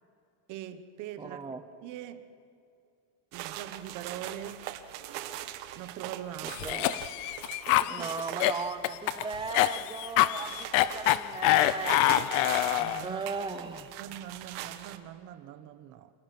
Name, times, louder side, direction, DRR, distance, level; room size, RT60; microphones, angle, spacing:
voice 1, 0.5-1.4 1.8-2.3 3.3-4.7 5.7-6.6 7.7-8.1 12.4-13.2 14.0-16.1, right 11 dB, 40° right, 1.1 m, -42 dB
voice 2, 1.2-1.6 6.4-7.0 7.9-12.1 13.0-13.9, right 4 dB, 10° right, 0.7 m, -37 dB
sound 1, 3.3-15.0, right 13 dB, 60° right, 1.5 m, -41 dB
Cough, 6.5-13.1, left 15 dB, 55° left, 0.8 m, -26 dB
29.0 x 27.5 x 6.1 m
cardioid pair, 175°, 48 cm